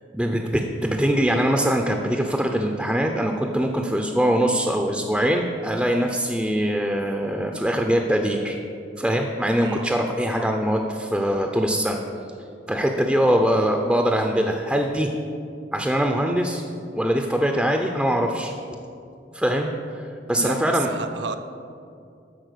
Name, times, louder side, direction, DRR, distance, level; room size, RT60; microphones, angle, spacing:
voice 1, 0.1-8.6 9.0-12.0 12.7-15.1 15.7-16.6 16.9-18.5 19.3-20.9, equal, 5° right, 3 dB, 0.5 m, -22 dB
voice 2, 9.6-9.9 20.4-21.4, right 4 dB, 75° right, 9 dB, 0.6 m, -31 dB
12.5 x 4.4 x 6.6 m, 2.5 s
head